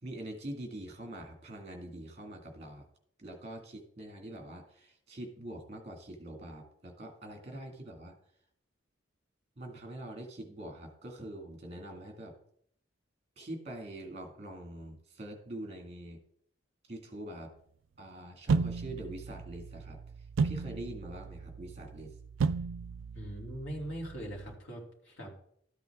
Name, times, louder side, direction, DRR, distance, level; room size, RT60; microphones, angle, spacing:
voice 1, 0.0-2.9 3.2-8.2 9.6-12.3 13.4-16.2 16.9-17.5 18.0-20.0 20.4-22.2, right 1 dB, 35° right, 3 dB, 2.0 m, -44 dB
sound 1, 18.5-24.5, right 5 dB, 85° right, 0.4 m, -35 dB
voice 2, 23.1-25.4, equal, 90° left, -2 dB, 3.1 m, -41 dB
13.0 x 8.1 x 3.6 m, 0.67 s
head